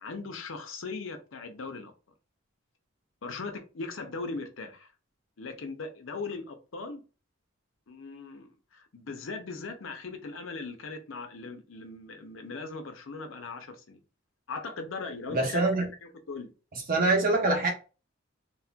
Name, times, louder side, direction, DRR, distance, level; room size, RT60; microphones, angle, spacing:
voice 1, 0.0-1.9 3.2-4.9 5.4-7.0 7.9-14.0 14.5-16.5, left 3 dB, 70° left, 0.6 m, -39 dB
voice 2, 15.3-15.9 16.7-17.7, right 2 dB, 45° right, 0.9 m, -25 dB
4.1 x 2.1 x 2.3 m
head